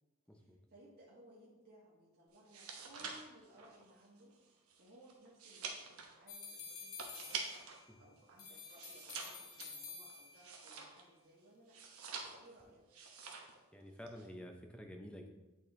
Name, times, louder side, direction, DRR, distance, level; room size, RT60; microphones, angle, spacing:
voice 1, 0.3-4.3 4.8-7.4 8.0-11.8 12.4-12.9, right 1 dB, 45° right, -7 dB, 1.4 m, -61 dB
sound 1, 2.4-7.8 8.2-11.2 11.7-12.6 12.9-13.6 13.9-14.3, right 5 dB, 85° right, 1.0 m, -47 dB
sound 2, 6.3-7.9 8.4-10.6, left 5 dB, 85° left, 1.1 m, -50 dB
voice 2, 13.7-15.3, equal, 5° left, 3 dB, 0.6 m, -50 dB
9.3 x 4.3 x 3.2 m, 1.1 s
head